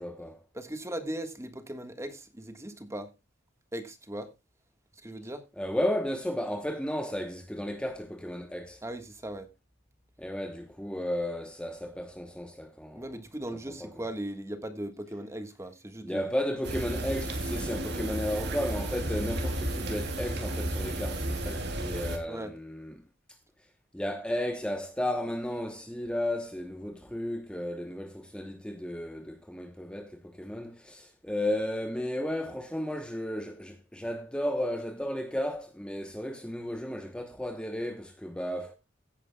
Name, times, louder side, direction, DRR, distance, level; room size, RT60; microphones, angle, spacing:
voice 1, 0.0-0.4 5.6-8.8 10.2-13.2 13.5-13.9 16.0-23.0 23.9-38.7, left 1 dB, 5° left, 1.0 m, -34 dB
voice 2, 0.5-3.1 3.7-4.3 5.0-5.4 8.8-9.5 12.9-16.3 22.3-22.5, right 1 dB, 15° right, 1.5 m, -38 dB
sound 1, 16.6-22.2, right 1 dB, 60° right, 2.9 m, -33 dB
16.5 x 9.8 x 2.3 m
head